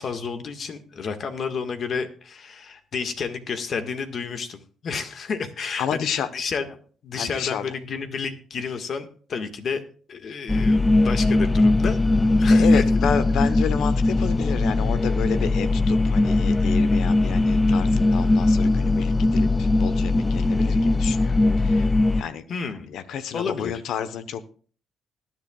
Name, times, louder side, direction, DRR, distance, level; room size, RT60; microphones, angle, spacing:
voice 1, 0.0-6.7 7.0-9.8 10.1-12.0 12.4-12.8 22.5-22.9 23.3-23.7, left 5 dB, 55° left, 7 dB, 1.7 m, -30 dB
voice 2, 5.8-6.3 7.1-7.7 10.3-10.4 12.5-22.4 22.9-24.5, left 8 dB, 80° left, 12 dB, 1.0 m, -30 dB
sound 1, 10.5-22.2, left 2 dB, 15° left, 0.4 m, -20 dB
19.5 x 10.5 x 2.4 m, 0.43 s
cardioid pair, 90°, 0 cm